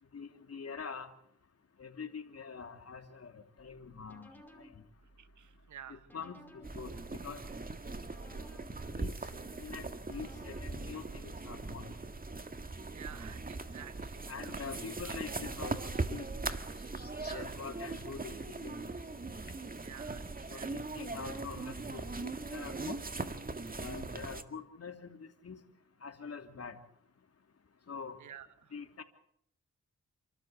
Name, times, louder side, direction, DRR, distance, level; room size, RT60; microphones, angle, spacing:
voice 1, 0.1-1.1 1.8-4.3 4.6-4.7 5.9-7.4 8.9-9.1 9.6-11.9 14.3-16.3 17.3-18.7 20.5-23.0 23.7-25.6 26.0-26.8 27.9-28.1 28.7-29.0, left 5 dB, 55° left, 5 dB, 3.1 m, -45 dB
sound 1, 3.6-11.5, equal, 5° left, 5.5 m, -59 dB
voice 2, 5.2-6.1 12.9-14.9 17.2-17.5 19.8-20.7 28.2-28.7, right 10 dB, 85° right, 13 dB, 1.2 m, -51 dB
sound 2, 6.6-24.4, right 3 dB, 30° right, 1.9 m, -40 dB
sound 3, 14.5-14.9 15.5-15.6 16.6-19.8, left 3 dB, 35° left, 3.4 m, -57 dB
28.0 x 13.0 x 8.3 m, 0.71 s
cardioid pair, 55°, 29 cm